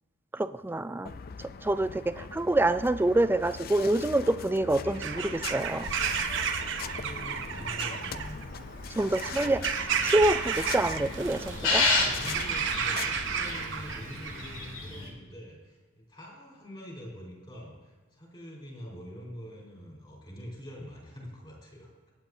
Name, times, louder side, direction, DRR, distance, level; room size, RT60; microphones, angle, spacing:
voice 1, 0.3-1.1 1.6-5.9 9.0-9.6 10.0-11.9, right 2 dB, 10° right, 12 dB, 0.3 m, -26 dB
sound 1, 1.0-13.6, left 6 dB, 50° left, 0.5 m, -41 dB
voice 2, 1.7-2.0 6.6-8.8 11.8-21.9, equal, 30° left, -3 dB, 4.4 m, -45 dB
Bird vocalization bird call bird song / Crow, 4.9-14.8, right 7 dB, 65° right, 0.9 m, -33 dB
sound 2, 9.3-15.1, left 2 dB, 70° left, 2.3 m, -32 dB
26.5 x 8.9 x 2.8 m, 1.3 s
head